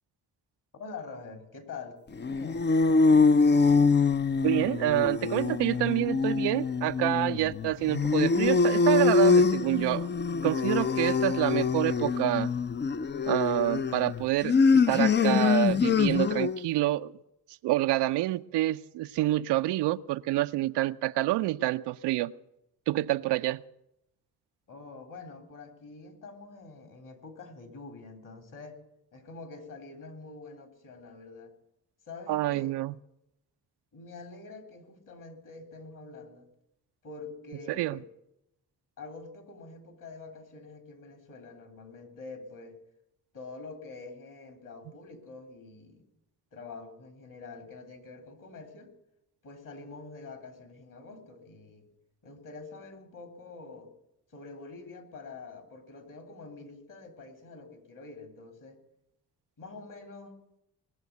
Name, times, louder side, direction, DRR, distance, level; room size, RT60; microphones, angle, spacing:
voice 1, 0.7-2.7 24.7-28.8 29.1-31.5 32.1-32.7 33.9-36.5 37.0-38.1 39.0-42.8 43.3-46.0 46.5-48.9 49.4-51.9 52.2-53.9 54.3-58.8 59.6-60.6, left 3 dB, 50° left, 5 dB, 3.5 m, -46 dB
sound 1, 2.2-16.6, left 4 dB, 25° left, 0.5 m, -24 dB
voice 2, 4.4-10.1 10.4-12.5 13.3-17.1 17.6-22.3 22.9-23.6 32.3-32.9 37.7-38.0, right 15 dB, 85° right, 11 dB, 0.6 m, -27 dB
20.5 x 7.2 x 9.4 m, 0.84 s
supercardioid pair, 60°, 40 cm